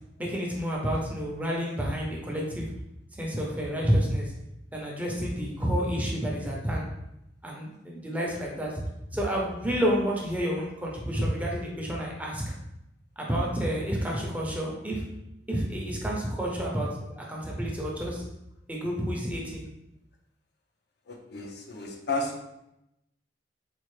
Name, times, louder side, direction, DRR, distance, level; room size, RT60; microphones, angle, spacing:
voice 1, 0.2-2.7 3.1-4.3 4.7-6.9 7.4-8.7 9.1-12.5 13.2-15.1 15.5-16.9 17.2-18.2 18.7-19.6, equal, 10° right, -3 dB, 0.6 m, -29 dB
voice 2, 21.1-22.4, left 2 dB, 60° left, 2 dB, 0.6 m, -33 dB
4.3 x 2.4 x 3.2 m, 0.86 s
head